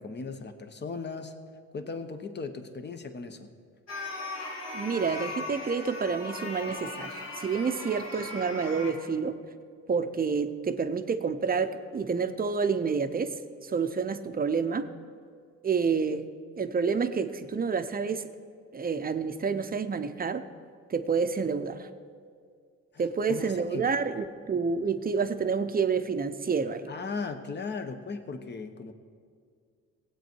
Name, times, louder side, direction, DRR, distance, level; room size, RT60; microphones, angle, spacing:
voice 1, 0.0-1.3 1.7-3.5 22.9-23.9 26.9-28.9, left 4 dB, 35° left, 8 dB, 1.0 m, -37 dB
sound 1, 3.9-8.9, left 2 dB, 60° left, 2.6 m, -38 dB
voice 2, 4.7-9.4 9.9-13.4 13.6-14.9 15.6-16.2 16.6-18.3 18.7-20.4 20.9-21.9 23.0-26.9, right 5 dB, 30° right, 10 dB, 0.7 m, -29 dB
17.0 x 8.4 x 4.6 m, 2.1 s
cardioid pair, 90°, 30 cm